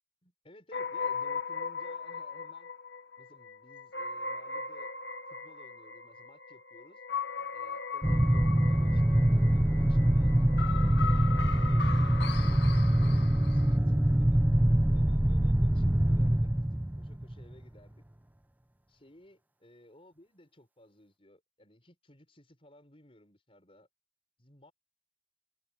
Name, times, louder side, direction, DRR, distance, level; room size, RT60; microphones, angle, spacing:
voice 1, 0.2-2.7 3.2-4.9 5.3-7.0 7.5-14.4 14.9-18.0 18.9-23.9 24.4-24.7, left 1 dB, 30° left, 6.6 m, -58 dB
sound 1, 0.7-13.8, left 5 dB, 75° left, 1.8 m, -38 dB
sound 2, 8.0-17.6, right 1 dB, 10° right, 0.4 m, -24 dB
head